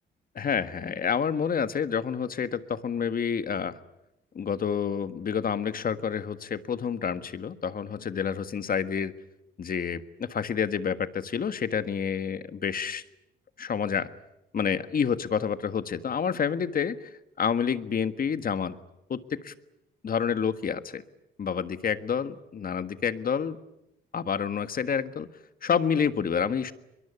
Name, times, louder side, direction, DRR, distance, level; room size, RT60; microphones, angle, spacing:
voice 1, 0.3-3.8 4.3-9.1 9.6-13.0 13.6-14.1 14.5-17.1 17.4-18.7 19.1-19.5 20.0-21.0 21.4-23.6 24.1-25.3 25.6-26.7, left 7 dB, 45° left, 12 dB, 1.6 m, -28 dB
23.0 x 22.5 x 9.8 m, 0.86 s
cardioid pair, 90°, 20 cm